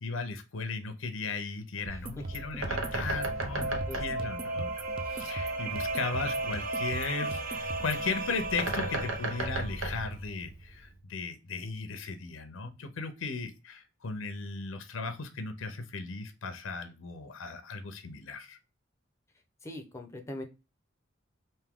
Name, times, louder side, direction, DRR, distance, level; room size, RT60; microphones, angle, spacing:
voice 1, 0.0-4.7 5.0-18.6, left 4 dB, 85° left, 8 dB, 0.6 m, -36 dB
Bird, 1.8-10.9, right 2 dB, 85° right, 0.9 m, -37 dB
voice 2, 1.9-2.2 3.9-4.0 19.6-20.4, left 1 dB, 15° left, 4 dB, 0.6 m, -41 dB
sound 1, 1.9-8.1, right 3 dB, 25° right, 0.4 m, -41 dB
sound 2, 2.2-9.9, right 2 dB, 45° right, 0.9 m, -36 dB
3.5 x 2.7 x 3.5 m, 0.29 s
head